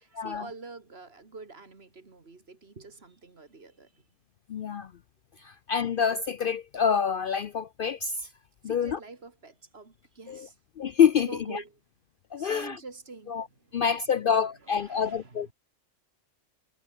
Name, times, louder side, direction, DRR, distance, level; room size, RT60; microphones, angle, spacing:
voice 1, 0.0-4.1 8.6-10.6 11.3-11.8 12.4-13.9 14.2-14.3 14.6-15.5, right 3 dB, 55° right, 2.5 m, -46 dB
voice 2, 4.5-4.9 5.4-8.3 8.6-9.0 10.3-10.5 10.8-11.6 12.3-12.8 13.3-13.5 13.7-15.5, left 7 dB, 55° left, 0.6 m, -26 dB
omnidirectional pair, 1.3 m